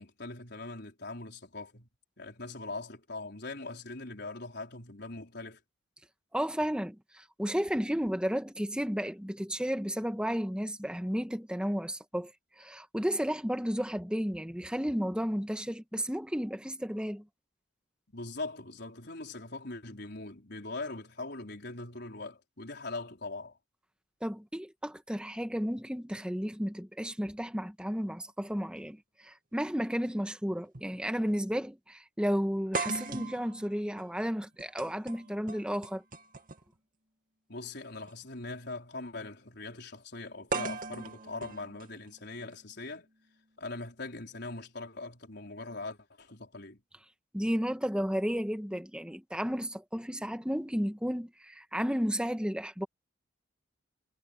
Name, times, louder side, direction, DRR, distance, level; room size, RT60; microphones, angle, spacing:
voice 1, 0.0-1.9 2.2-5.6 18.1-23.6 37.5-43.1 43.6-46.8, left 3 dB, 60° left, 5.0 m, -41 dB
voice 2, 6.3-12.3 12.6-17.2 24.2-36.0 47.3-52.9, equal, 5° right, 1.6 m, -33 dB
sound 1, 29.5-29.6 30.7-30.9 31.3-31.4 32.7-36.8 38.0-38.1 40.5-42.5, right 3 dB, 45° right, 2.7 m, -39 dB
head